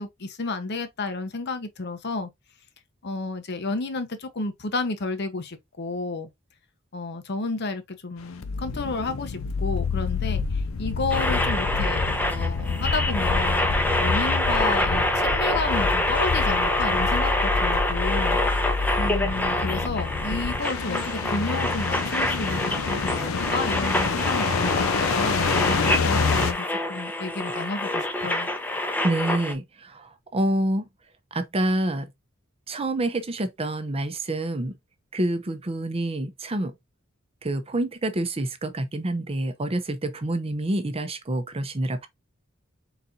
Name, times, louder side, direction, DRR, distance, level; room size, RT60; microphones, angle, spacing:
voice 1, 0.0-2.3 3.0-6.3 6.9-13.7 14.0-18.4 19.0-28.5, left 3 dB, 55° left, 0.8 m, -31 dB
sound 1, 8.3-26.5, left 5 dB, 90° left, 0.6 m, -27 dB
sound 2, 11.1-29.5, left 1 dB, 10° left, 0.7 m, -26 dB
voice 2, 29.0-30.8 31.3-32.1 32.7-34.7 35.1-36.7 37.4-42.1, right 1 dB, 30° right, 0.7 m, -27 dB
4.1 x 4.0 x 2.7 m
head